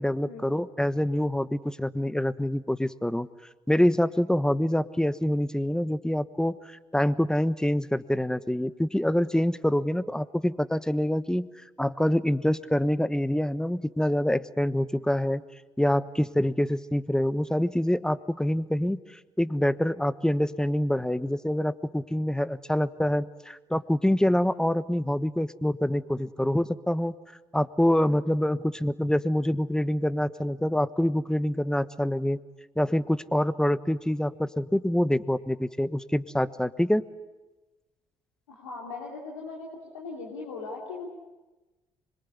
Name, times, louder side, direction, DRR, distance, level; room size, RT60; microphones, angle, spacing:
voice 1, 0.0-3.3 3.7-11.5 11.8-15.4 15.8-27.1 27.5-32.4 32.8-37.1, left 1 dB, 5° left, 15 dB, 1.2 m, -26 dB
voice 2, 38.5-39.7 39.9-41.1, left 4 dB, 90° left, -2 dB, 2.9 m, -39 dB
25.5 x 22.5 x 9.7 m, 1.1 s
hypercardioid pair, 50°, 14 cm